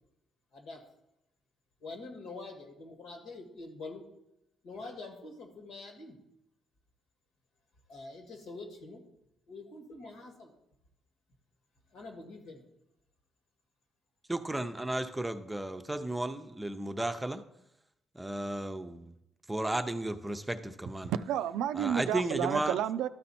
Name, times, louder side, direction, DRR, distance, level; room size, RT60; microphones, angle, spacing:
voice 1, 1.8-4.0 4.6-6.2 7.9-9.0 9.5-10.6 11.9-12.6, left 3 dB, 85° left, 1.8 m, -45 dB
voice 2, 14.3-17.4 18.1-19.1 19.5-21.1 21.8-22.7, right 1 dB, 10° right, 0.6 m, -34 dB
voice 3, 21.0-23.1, right 10 dB, 85° right, 0.3 m, -31 dB
12.5 x 4.3 x 4.2 m
cardioid pair, 90°, 0 cm